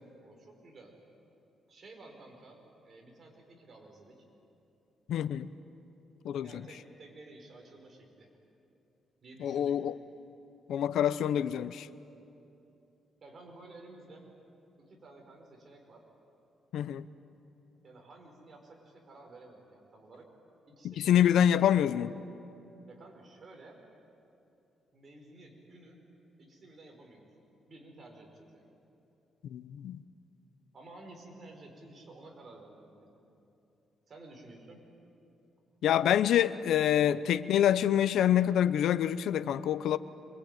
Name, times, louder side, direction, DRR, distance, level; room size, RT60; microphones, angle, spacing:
voice 1, 0.2-0.9 1.7-2.6 2.8-4.2 6.4-8.3 9.2-9.8 13.2-14.3 14.8-16.0 17.8-20.3 20.7-21.6 22.9-23.8 24.9-26.0 26.4-27.3 27.7-28.8 30.7-33.2 34.1-34.9, right 2 dB, 40° right, 1 dB, 5.2 m, -53 dB
voice 2, 5.1-5.5 6.2-6.7 9.4-9.9 10.7-11.9 16.7-17.0 20.8-22.2 29.5-30.0 35.8-40.0, left 10 dB, 80° left, 15 dB, 0.7 m, -26 dB
25.5 x 22.0 x 9.3 m, 2.8 s
cardioid pair, 140°, 0 cm